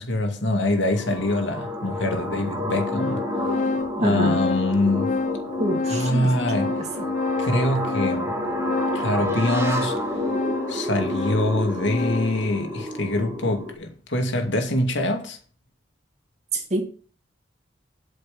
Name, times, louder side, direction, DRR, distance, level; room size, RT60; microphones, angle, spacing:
voice 1, 0.0-3.3 4.0-5.2 5.9-6.8 7.4-8.5 8.9-10.0 10.7-15.4, left 1 dB, 80° left, 2.5 m, -24 dB
sound 1, 0.7-13.7, left 1 dB, 15° right, 1.9 m, -30 dB
Organ, 1.2-1.3 2.1-2.2 2.6-12.5, left 3 dB, 40° left, 0.5 m, -29 dB
voice 2, 4.0-4.4 5.6-7.0 16.5-16.9, right 1 dB, 35° right, 2.5 m, -27 dB
8.7 x 6.5 x 7.3 m
head